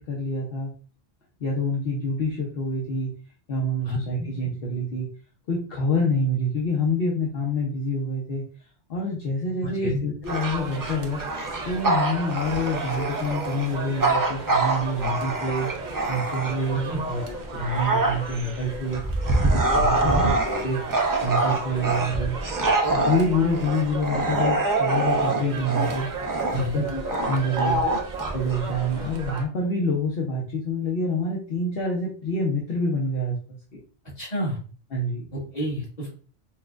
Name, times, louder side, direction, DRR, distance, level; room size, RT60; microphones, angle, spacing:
voice 1, 0.1-0.7 1.4-3.1 3.5-5.1 5.5-8.4 8.9-11.2 11.6-15.7 16.1-19.0 19.5-20.8 21.2-22.3 22.9-26.1 26.5-27.8 28.3-33.3 33.7-33.8 34.9-35.3, left 1 dB, 65° left, -3 dB, 1.0 m, -27 dB
voice 2, 3.8-4.3 9.6-10.0 16.9-17.0 20.0-20.3 26.4-26.9 27.8-28.0 34.2-34.6 35.3-36.1, equal, 40° left, -5 dB, 1.7 m, -29 dB
Bark / Growling, 10.2-16.8 17.3-29.2, right 2 dB, 35° right, 0.3 m, -25 dB
sound 1, 10.3-29.4, right 3 dB, 50° right, 0.7 m, -35 dB
5.7 x 2.2 x 2.4 m, 0.39 s
omnidirectional pair, 1.1 m